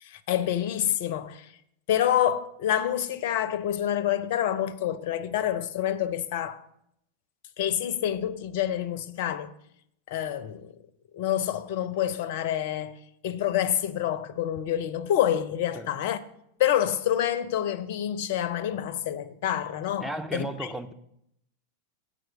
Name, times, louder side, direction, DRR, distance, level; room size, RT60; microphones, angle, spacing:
voice 1, 0.0-1.5 1.9-6.6 7.6-9.5 10.1-10.7 11.1-13.0 13.2-16.2 16.6-20.7, left 11 dB, 50° left, 0.5 m, -27 dB
voice 2, 20.0-20.9, right 1 dB, ahead, 0.5 m, -34 dB
7.7 x 4.9 x 6.8 m
figure-of-eight pair, 90°, 0 cm